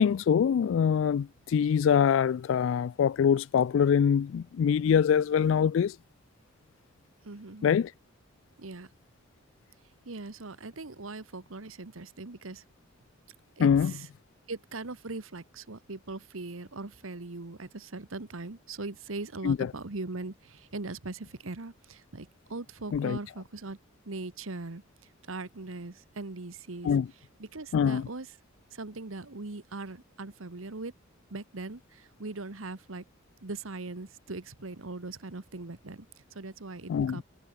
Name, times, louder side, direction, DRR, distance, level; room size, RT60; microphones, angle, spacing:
voice 1, 0.0-6.0 7.6-7.9 13.6-13.9 19.4-19.6 22.9-23.2 26.8-27.1 27.7-28.0 36.9-37.2, left 7 dB, 65° left, 0.3 m, -24 dB
voice 2, 7.2-7.8 8.6-8.9 10.0-12.6 13.6-14.1 14.5-23.8 24.0-24.8 25.3-28.4 28.7-30.9 31.3-33.0 33.4-37.2, right 3 dB, 80° right, 1.3 m, -40 dB
head